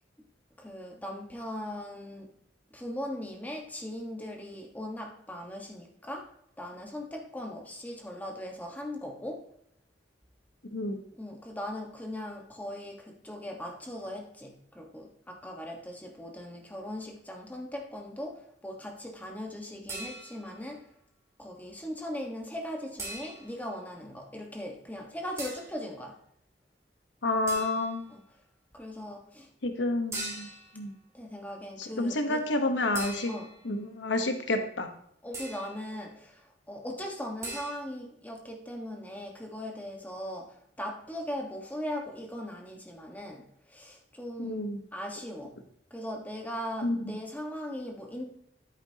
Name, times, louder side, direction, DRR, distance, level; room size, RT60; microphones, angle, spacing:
voice 1, 0.6-2.3 2.7-6.3 6.6-9.4 11.2-20.9 21.4-26.2 28.1-28.2 28.7-29.5 31.1-32.4 33.3-33.5 35.2-43.4 43.7-45.5 45.9-48.3, left 1 dB, 10° left, 1 dB, 1.3 m, -39 dB
sound 1, 19.9-20.6 23.0-23.6 25.4-25.8 27.5-28.0 30.1-30.8 32.9-33.7 35.3-35.8 37.4-37.7, right 2 dB, 15° right, 2.4 m, -40 dB
voice 2, 27.2-28.0 29.6-30.5 30.7-30.9 31.8-33.3 33.6-34.9 44.4-44.8 46.8-47.0, left 2 dB, 90° left, 7 dB, 1.1 m, -29 dB
10.0 x 8.8 x 2.9 m, 0.69 s
head